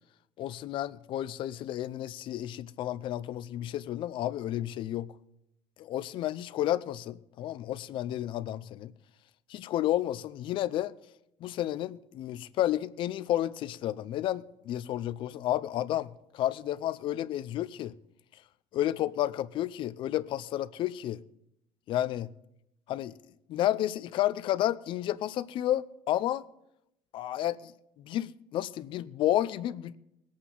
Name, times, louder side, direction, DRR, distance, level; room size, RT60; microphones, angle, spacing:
voice 1, 0.4-5.1 5.8-8.9 9.5-10.9 11.4-17.9 18.7-21.2 21.9-22.3 22.9-23.1 23.5-26.4 27.1-27.7 28.0-30.0, left 13 dB, 55° left, 0.5 m, -31 dB
20.5 x 8.6 x 3.9 m
cardioid pair, 140°, 10 cm